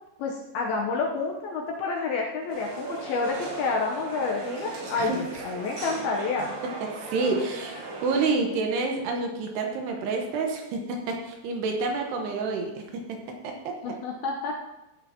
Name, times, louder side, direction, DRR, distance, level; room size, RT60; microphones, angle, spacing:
voice 1, 0.2-6.6 13.8-14.6, left 4 dB, 75° left, 0 dB, 2.4 m, -29 dB
sound 1, 2.5-8.3, right 3 dB, 60° right, 4.5 m, -37 dB
voice 2, 5.0-5.4 6.8-14.0, right 3 dB, 75° right, 2 dB, 3.0 m, -29 dB
15.0 x 9.2 x 2.9 m, 0.99 s
omnidirectional pair, 5.2 m